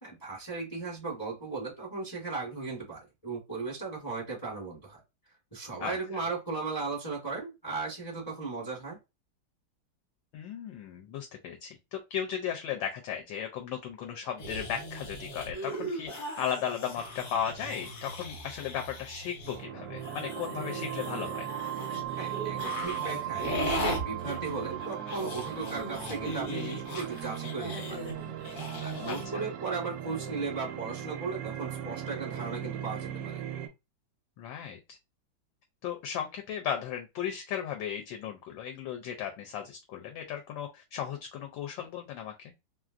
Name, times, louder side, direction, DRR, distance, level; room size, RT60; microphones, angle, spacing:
voice 1, 0.0-5.0 5.5-9.0 22.2-28.1 28.8-33.4, right 4 dB, 25° left, -5 dB, 0.4 m, -36 dB
voice 2, 10.3-21.5 29.1-29.4 34.4-35.0 35.8-42.5, left 9 dB, 80° left, 3 dB, 1.2 m, -36 dB
sound 1, 14.4-19.6 20.0-29.3, equal, 55° left, 1.2 m, -38 dB
sound 2, 19.5-33.7, right 10 dB, 75° right, 0.8 m, -38 dB
3.1 x 2.4 x 2.4 m, 0.25 s
omnidirectional pair, 2.1 m